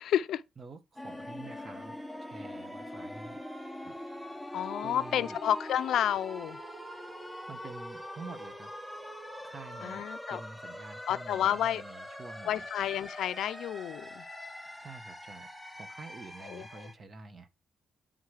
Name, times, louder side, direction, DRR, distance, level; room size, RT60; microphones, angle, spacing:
voice 1, 0.0-0.4 4.5-6.6 9.8-10.4 11.1-11.8 12.5-14.2 16.5-16.7, left 10 dB, 75° left, 0.5 m, -30 dB
voice 2, 0.6-3.4 3.8-4.0 4.8-5.4 7.2-8.7 9.4-12.6 14.8-15.5 15.8-17.5, right 3 dB, 40° right, 1.1 m, -48 dB
sound 1, 1.0-16.9, left 1 dB, ahead, 0.8 m, -43 dB
9.5 x 3.7 x 4.8 m
cardioid pair, 90°, 0 cm